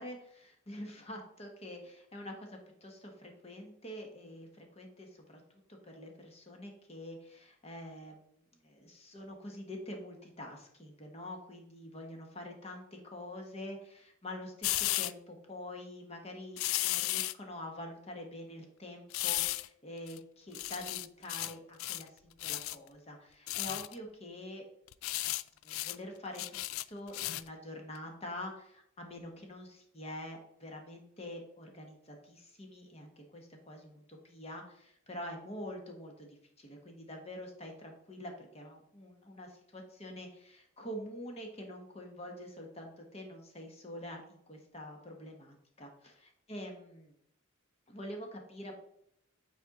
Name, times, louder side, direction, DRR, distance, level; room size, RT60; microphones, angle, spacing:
voice 1, 0.0-5.4 5.7-8.2 8.6-24.6 25.6-47.1 47.9-48.8, left 1 dB, 30° left, 2 dB, 1.2 m, -46 dB
sound 1, 14.6-15.1 16.6-17.3 19.1-19.7 20.1-20.2 20.5-21.5 21.8-22.1 22.4-22.7 23.5-23.9 24.9-25.4 25.7-25.9 26.3-27.5 27.9-28.0, left 16 dB, 75° left, 0.3 m, -34 dB
8.9 x 4.4 x 3.7 m, 0.71 s
head